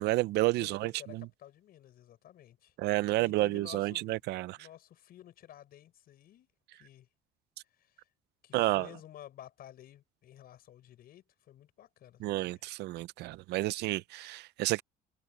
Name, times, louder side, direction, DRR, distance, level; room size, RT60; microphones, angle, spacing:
voice 1, 0.0-1.3 2.8-4.6 8.5-8.9 12.2-14.8, right 18 dB, 80° right, 0.6 m, -30 dB
voice 2, 0.5-2.7 3.2-4.2 4.5-6.5 6.8-7.1 7.7-8.1 8.4-12.6, left 12 dB, 65° left, 6.0 m, -53 dB
cardioid pair, 110°, 17 cm